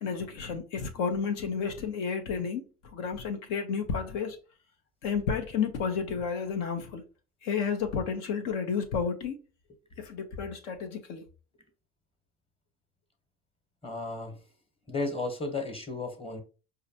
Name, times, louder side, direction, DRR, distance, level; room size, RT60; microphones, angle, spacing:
voice 1, 0.0-2.6 2.9-4.4 5.0-7.0 7.4-9.4 10.0-11.2, left 6 dB, 70° left, 0.9 m, -31 dB
voice 2, 13.8-14.4 14.9-16.4, left 3 dB, 20° left, 1.1 m, -34 dB
4.8 x 2.3 x 2.8 m
hypercardioid pair, 75°, 31 cm